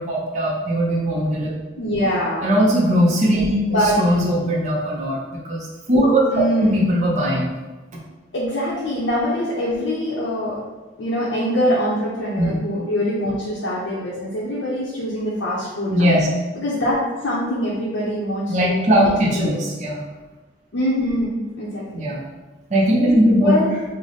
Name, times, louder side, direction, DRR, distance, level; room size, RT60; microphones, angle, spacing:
voice 1, 0.0-1.5 2.4-6.3 6.6-7.5 12.4-12.6 15.9-16.3 18.5-20.0 21.9-22.2 22.7-23.6, equal, 40° right, -4 dB, 0.5 m, -19 dB
voice 2, 1.8-2.5 3.7-4.0 6.3-6.9 8.3-10.6 11.0-16.2 16.5-18.8 19.3-19.6 20.7-22.1 23.4-23.8, equal, 75° left, -7 dB, 0.6 m, -23 dB
3.2 x 2.0 x 3.9 m, 1.2 s
head